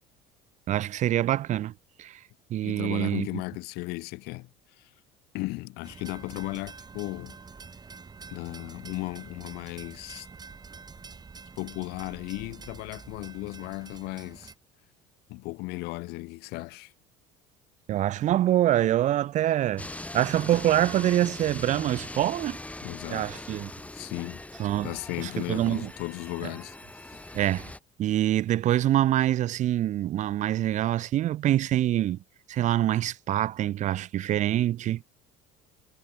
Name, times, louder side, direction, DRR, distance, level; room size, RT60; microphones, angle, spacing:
voice 1, 0.7-1.7 2.0-2.2 2.5-3.3 17.9-19.9 20.1-22.6 23.1-23.7 24.6-24.9 25.2-25.9 27.3-27.7 28.0-32.2 32.5-35.0, right 13 dB, 45° right, 0.5 m, -25 dB
voice 2, 2.6-4.5 4.8-4.9 5.3-7.4 8.3-10.3 11.6-14.5 15.3-16.9 22.8-23.5 23.9-24.4 24.8-26.8 27.0-27.2, left 23 dB, 70° left, 0.9 m, -36 dB
sound 1, 5.8-14.5, right 5 dB, 25° right, 1.6 m, -47 dB
sound 2, 19.8-27.8, left 1 dB, 10° left, 1.9 m, -41 dB
supercardioid pair, 85°, 17 cm